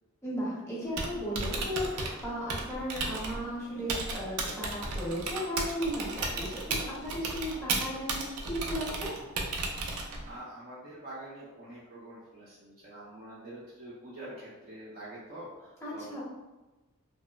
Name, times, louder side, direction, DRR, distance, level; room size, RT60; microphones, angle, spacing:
voice 1, 0.2-9.1 15.8-16.2, equal, 10° left, -8 dB, 0.8 m, -35 dB
Typing, 0.8-10.4, right 3 dB, 90° right, 0.5 m, -35 dB
voice 2, 9.9-16.2, right 1 dB, 45° right, -10 dB, 0.7 m, -46 dB
2.9 x 2.0 x 2.3 m, 1.1 s
head